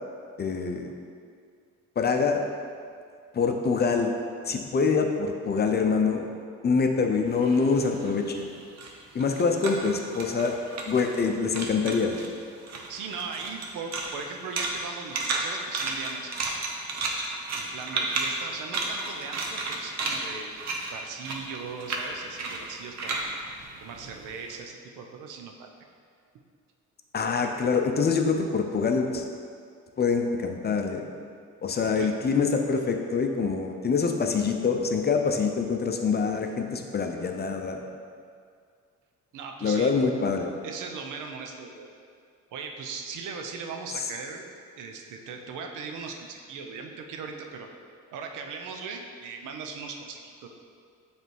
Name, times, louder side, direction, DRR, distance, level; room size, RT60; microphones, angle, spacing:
voice 1, 0.4-0.9 2.0-2.5 3.3-4.1 4.5-6.3 6.6-8.5 9.1-10.6 10.9-12.2 27.1-29.2 30.0-31.1 31.6-37.9 39.6-40.6, left 5 dB, 35° left, 4 dB, 0.6 m, -25 dB
sound 1, 7.3-11.3 11.5-12.3 12.6-24.5, right 3 dB, 60° right, 0.9 m, -33 dB
voice 2, 12.9-16.4 17.5-20.5 20.9-23.3 23.8-25.7 32.0-32.1 39.3-40.0 40.6-41.9 42.5-44.5 44.8-47.7 48.1-50.5, right 5 dB, 85° right, 3 dB, 0.7 m, -39 dB
6.7 x 3.4 x 4.5 m, 2.2 s
cardioid pair, 90°, 30 cm